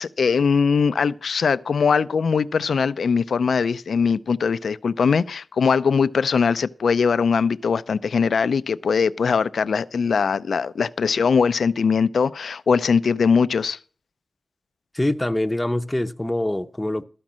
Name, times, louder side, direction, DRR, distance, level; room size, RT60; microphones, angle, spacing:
voice 1, 0.0-13.8, left 5 dB, 90° left, 0.4 m, -21 dB
voice 2, 14.9-17.0, left 1 dB, 15° left, 0.7 m, -24 dB
13.5 x 5.2 x 7.4 m
wide cardioid pair, 65°, 0 cm